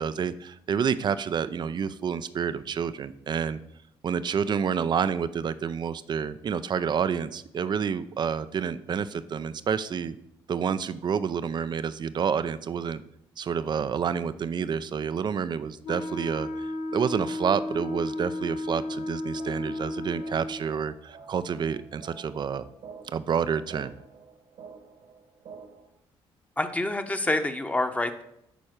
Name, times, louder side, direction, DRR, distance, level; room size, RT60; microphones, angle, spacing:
voice 1, 0.0-3.6 4.0-10.2 10.5-13.0 13.4-22.7 23.1-23.9, right 7 dB, 50° right, 14 dB, 0.6 m, -29 dB
Wind instrument woodwind instrument, 15.8-20.7, left 1 dB, 70° left, 1.1 m, -33 dB
sound 1, 18.9-25.9, right 5 dB, 75° right, 2.0 m, -49 dB
voice 2, 26.6-28.2, left 2 dB, 15° left, 7 dB, 1.0 m, -27 dB
10.5 x 4.3 x 6.6 m, 0.79 s
cardioid pair, 85°, 10 cm